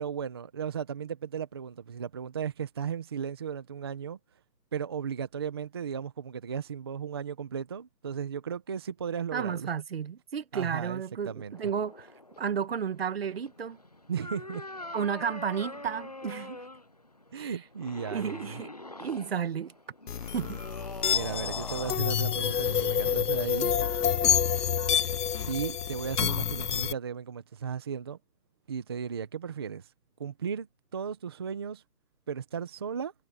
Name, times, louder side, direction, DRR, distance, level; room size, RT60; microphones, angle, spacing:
voice 1, 0.0-4.2 4.7-9.7 10.5-11.5 14.1-14.6 17.3-18.6 21.1-23.7 25.5-28.2 28.7-29.9 30.2-30.7 30.9-31.8 32.3-33.1, right 7 dB, 15° right, 0.9 m, -35 dB
voice 2, 9.3-12.1 12.4-13.8 14.9-16.6 17.3-17.6 18.1-18.7 19.0-19.7 20.3-20.6, right 7 dB, 40° right, 1.3 m, -32 dB
sound 1, 11.5-22.0, left 2 dB, 25° left, 0.6 m, -44 dB
sound 2, 20.1-26.9, left 8 dB, 70° left, 0.8 m, -28 dB
hypercardioid pair, 160°, 49 cm